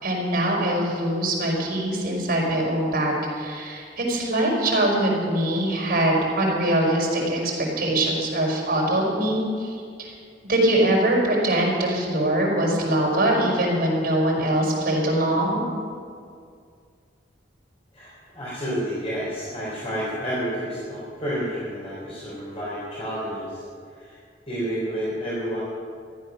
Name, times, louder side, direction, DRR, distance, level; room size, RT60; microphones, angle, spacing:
voice 1, 0.0-10.1 10.5-15.6, right 1 dB, 55° right, -4 dB, 4.8 m, -23 dB
voice 2, 17.9-23.6 23.9-24.2 24.5-25.6, equal, 35° left, -8 dB, 3.9 m, -30 dB
14.5 x 12.0 x 6.4 m, 2.3 s
head